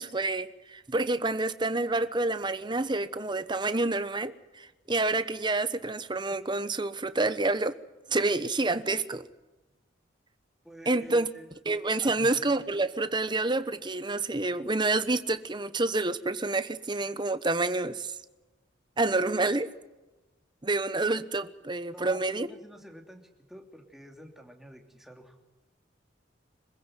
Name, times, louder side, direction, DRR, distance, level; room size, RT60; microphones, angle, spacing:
voice 1, 0.0-7.8 8.1-9.3 10.9-11.3 11.7-18.2 19.0-19.7 20.6-22.5, right 2 dB, 25° right, 1.1 m, -28 dB
voice 2, 10.6-11.5 12.0-12.4 21.9-25.3, equal, ahead, 3.0 m, -48 dB
26.0 x 15.5 x 9.2 m
head